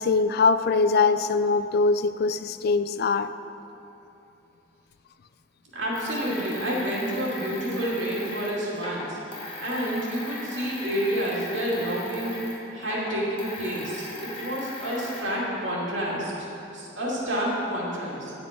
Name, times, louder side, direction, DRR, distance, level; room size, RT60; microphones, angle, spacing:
voice 1, 0.0-3.3, left 4 dB, 55° left, 12 dB, 0.4 m, -22 dB
voice 2, 5.7-12.3 12.7-16.5 16.7-18.3, equal, 85° right, -5 dB, 2.6 m, -29 dB
sound 1, 5.9-12.6 12.8-15.2, left 1 dB, 30° left, 1.6 m, -38 dB
9.5 x 7.8 x 5.2 m, 2.9 s
head